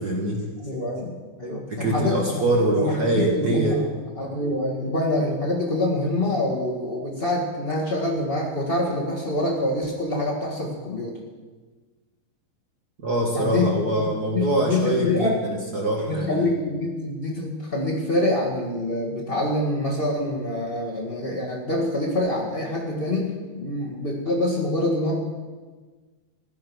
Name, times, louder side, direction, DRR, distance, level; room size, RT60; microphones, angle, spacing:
voice 1, 0.0-0.4 1.7-3.8 13.0-16.5, right 1 dB, 65° right, 0 dB, 0.9 m, -24 dB
voice 2, 0.6-2.2 2.7-3.8 4.2-11.2 13.3-15.4 16.1-25.2, left 1 dB, 80° left, -3 dB, 0.5 m, -26 dB
16.0 x 11.0 x 6.2 m, 1.4 s
omnidirectional pair, 4.5 m